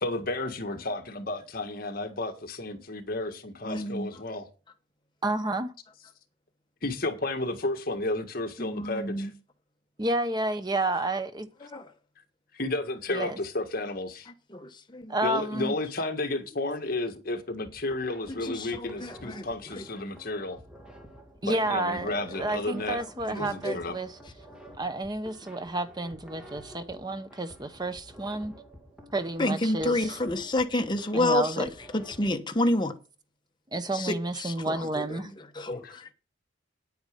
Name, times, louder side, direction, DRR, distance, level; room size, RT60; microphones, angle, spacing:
voice 1, 0.0-4.5 6.8-9.3 12.5-14.3 15.2-20.6 21.4-23.9 35.7-35.8, left 2 dB, 50° left, 1.7 m, -32 dB
voice 2, 3.6-4.1 8.6-9.3 11.6-11.9 14.5-15.1 18.3-19.5 19.8-19.9 23.0-23.1 23.3-23.8 29.4-33.0 33.9-35.8, left 1 dB, 25° left, 1.1 m, -29 dB
voice 3, 5.2-5.7 10.0-11.5 13.1-13.4 15.1-15.7 21.4-24.1 24.8-28.5 29.1-30.2 31.1-31.7 33.7-35.3, right 2 dB, 20° right, 0.9 m, -30 dB
sound 1, 17.6-32.3, right 1 dB, 5° right, 2.5 m, -50 dB
9.6 x 9.3 x 5.2 m
head